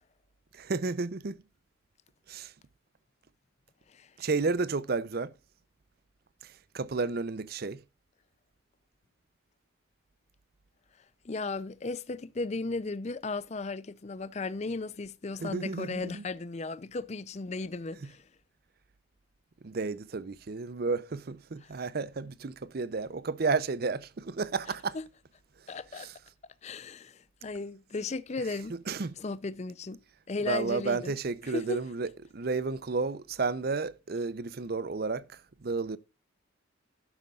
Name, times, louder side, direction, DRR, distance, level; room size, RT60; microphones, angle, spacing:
voice 1, 0.5-1.4 2.3-2.5 4.2-5.3 6.4-7.8 15.4-16.2 19.6-25.0 25.9-26.1 28.7-29.2 30.5-36.0, right 4 dB, 50° right, 0.6 m, -32 dB
voice 2, 11.2-18.2 21.6-21.7 24.9-25.1 25.7-26.1 26.6-28.8 29.2-30.0 30.3-31.1 31.4-31.8, left 3 dB, 35° left, 0.5 m, -35 dB
12.0 x 11.5 x 2.4 m
head